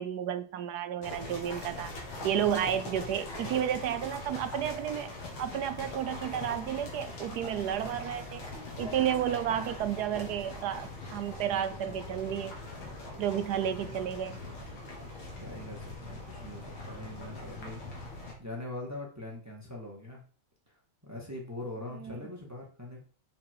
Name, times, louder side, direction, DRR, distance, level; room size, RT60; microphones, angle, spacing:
voice 1, 0.0-1.9 2.2-5.1 5.4-8.4 8.8-12.5 13.2-14.4 22.0-22.2, right 10 dB, 70° right, 0.9 m, -32 dB
sound 1, 1.0-18.3, left 2 dB, 80° left, 2.8 m, -42 dB
voice 2, 8.7-9.4 15.4-17.8 18.1-20.2 20.7-20.8 21.0-23.0, left 2 dB, 10° right, 1.6 m, -42 dB
7.4 x 4.3 x 4.7 m
omnidirectional pair, 2.2 m